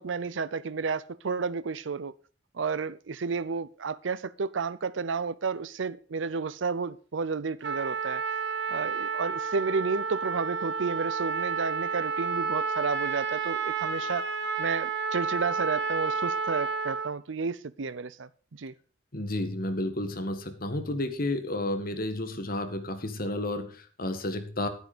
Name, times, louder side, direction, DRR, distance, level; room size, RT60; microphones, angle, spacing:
voice 1, 0.0-2.1 2.5-8.2 8.7-14.3 14.6-18.7, right 5 dB, 85° right, 0.6 m, -31 dB
Trumpet, 7.6-17.1, right 5 dB, 65° right, 1.5 m, -30 dB
voice 2, 19.1-24.7, left 1 dB, 50° left, 1.8 m, -31 dB
10.5 x 9.6 x 5.0 m
head